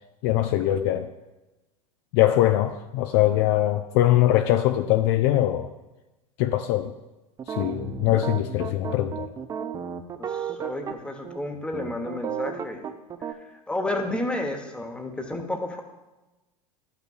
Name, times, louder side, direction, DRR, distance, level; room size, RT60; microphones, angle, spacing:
voice 1, 0.2-1.1 2.1-5.7 6.4-6.9 7.5-9.3, left 13 dB, 45° left, 8 dB, 0.4 m, -22 dB
sound 1, 7.4-11.0 11.2-11.4 11.7-13.3, right 7 dB, 20° right, 0.5 m, -33 dB
voice 2, 10.2-12.9 13.3-13.4 13.7-15.8, left 1 dB, 5° left, 4 dB, 1.0 m, -31 dB
12.5 x 5.6 x 2.4 m, 1.1 s
figure-of-eight pair, 85°, 19 cm